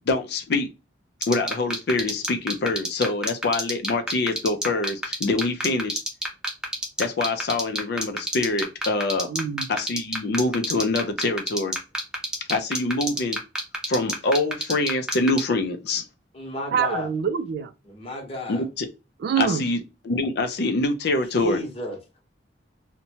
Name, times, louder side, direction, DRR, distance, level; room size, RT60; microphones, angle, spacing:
voice 1, 0.1-0.7 1.3-6.0 7.0-9.3 9.7-11.7 12.5-13.4 13.9-16.0 18.5-18.9 19.4-21.6, left 2 dB, 60° left, 0.4 m, -25 dB
sound 1, 1.2-15.4, right 1 dB, 5° right, 0.6 m, -26 dB
voice 2, 9.3-9.7 16.7-17.7 19.2-19.6, right 7 dB, 60° right, 0.3 m, -25 dB
voice 3, 16.3-17.1 17.9-18.7 21.4-22.0, left 1 dB, 35° left, 0.9 m, -32 dB
2.7 x 2.1 x 2.8 m
head